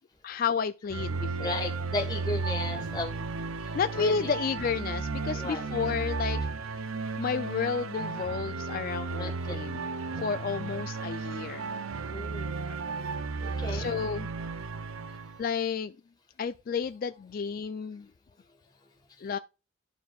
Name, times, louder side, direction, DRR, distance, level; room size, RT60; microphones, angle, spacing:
voice 1, 0.2-1.7 3.7-6.4 7.2-9.9 10.2-11.7 12.7-13.0 13.7-14.3 15.4-16.0 16.4-18.1 19.2-19.4, left 6 dB, 45° left, 0.3 m, -31 dB
sound 1, 0.9-15.4, right 4 dB, 80° right, 0.5 m, -34 dB
voice 2, 1.4-3.2 3.6-4.3 5.3-5.6 9.1-9.6 10.2-10.3 12.1-12.7 13.4-13.9, left 2 dB, 20° left, 1.4 m, -35 dB
12.5 x 4.4 x 2.3 m
head